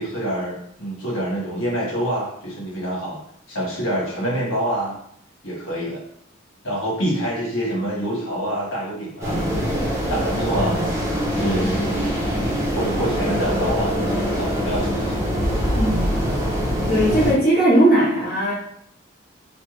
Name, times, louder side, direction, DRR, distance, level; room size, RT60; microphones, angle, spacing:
voice 1, 0.0-3.2 3.5-5.0 5.4-6.0 6.6-9.4 10.1-10.9 11.4-11.9 12.6-15.3, right 1 dB, 80° left, -7 dB, 1.4 m, -26 dB
sound 1, 9.2-17.3, equal, 15° right, 0.7 m, -23 dB
voice 2, 15.7-16.2 16.9-18.5, right 1 dB, 50° left, -9 dB, 1.3 m, -18 dB
3.3 x 2.2 x 3.1 m, 0.71 s
head